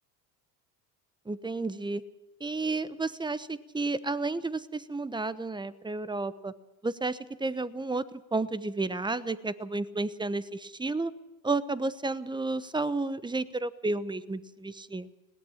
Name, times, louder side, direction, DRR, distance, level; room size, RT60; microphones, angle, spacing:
voice 1, 1.3-2.0 2.4-6.5 6.8-11.1 11.4-15.1, right 3 dB, 10° right, 15 dB, 1.0 m, -32 dB
20.5 x 17.5 x 7.2 m, 1.1 s
supercardioid pair, 85°, 44 cm